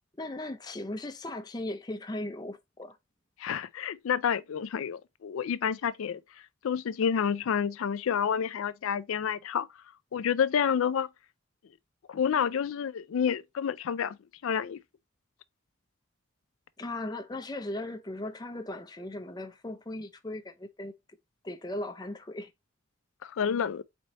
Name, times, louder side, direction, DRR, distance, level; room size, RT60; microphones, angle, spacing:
voice 1, 0.2-3.0 16.8-20.9 21.4-22.5, left 1 dB, 20° left, 0.5 m, -37 dB
voice 2, 3.4-6.2 6.6-9.7 10.1-11.1 12.1-14.2 14.4-14.8 23.2-23.8, left 7 dB, 85° left, 0.4 m, -29 dB
4.3 x 4.1 x 2.9 m
head